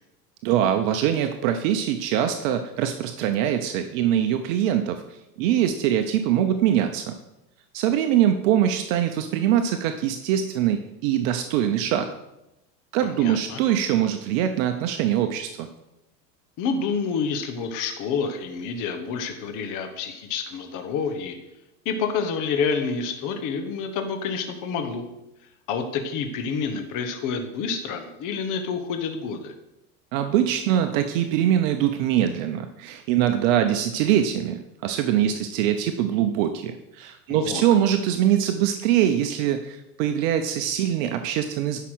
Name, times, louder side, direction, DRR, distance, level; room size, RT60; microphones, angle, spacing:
voice 1, 0.4-5.0 5.4-7.1 7.7-12.1 12.9-15.7 30.1-41.8, right 10 dB, 55° right, 7 dB, 0.9 m, -23 dB
voice 2, 13.0-13.6 16.6-21.4 21.8-25.1 25.7-29.5 37.3-37.6, left 5 dB, 40° left, 6 dB, 1.2 m, -28 dB
9.9 x 5.8 x 6.2 m, 0.91 s
supercardioid pair, 130°, 47 cm